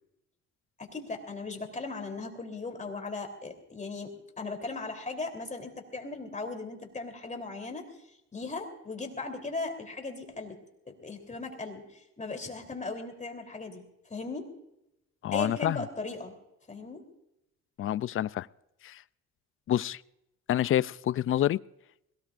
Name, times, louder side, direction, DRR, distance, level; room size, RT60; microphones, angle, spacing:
voice 1, 0.8-8.0 8.3-10.6 10.9-14.5 15.3-16.3 16.7-17.1, left 3 dB, 25° left, 4 dB, 3.4 m, -38 dB
voice 2, 15.2-15.8 17.8-18.5 18.8-19.0 19.7-20.0 20.5-21.6, left 12 dB, 45° left, 19 dB, 0.4 m, -27 dB
21.5 x 18.0 x 2.5 m, 0.86 s
cardioid pair, 90°, 30 cm